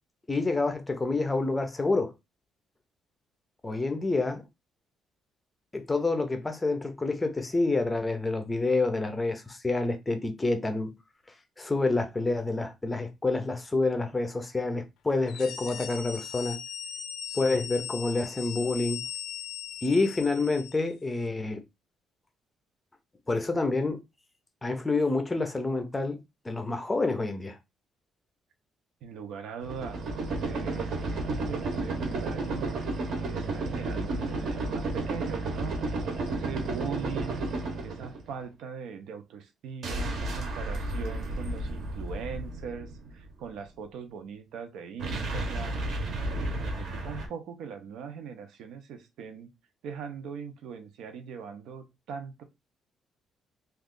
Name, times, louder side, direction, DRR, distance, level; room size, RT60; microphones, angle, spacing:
voice 1, 0.3-2.1 3.6-4.4 5.7-10.9 11.6-16.6 17.3-19.0 19.8-21.6 23.3-24.0 24.6-27.6, left 3 dB, 10° left, 0.5 m, -28 dB
sound 1, 15.2-20.9, left 9 dB, 80° left, 0.5 m, -39 dB
voice 2, 29.0-30.0 30.4-32.8 33.2-37.5 37.8-45.8 46.3-49.5 49.8-52.4, right 6 dB, 80° right, 0.7 m, -41 dB
sound 2, 29.6-38.4 39.8-43.2 45.0-47.3, right 2 dB, 50° right, 0.9 m, -32 dB
3.0 x 2.4 x 3.7 m
cardioid pair, 180°, 0 cm